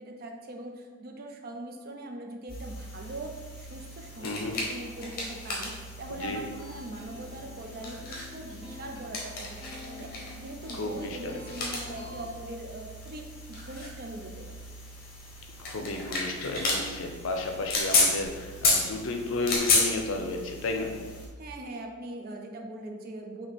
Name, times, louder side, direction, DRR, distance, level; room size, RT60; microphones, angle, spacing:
voice 1, 0.0-14.6 21.4-23.5, right 1 dB, 45° right, 3 dB, 0.4 m, -41 dB
sound 1, 2.5-21.3, left 3 dB, 45° left, 0.8 m, -33 dB
voice 2, 4.2-4.6 6.1-6.4 10.7-11.3 15.7-20.9, left 2 dB, 65° left, 3 dB, 0.5 m, -33 dB
sound 2, 6.5-12.3, left 3 dB, 25° left, 0.6 m, -49 dB
4.0 x 2.8 x 3.4 m, 1.5 s
head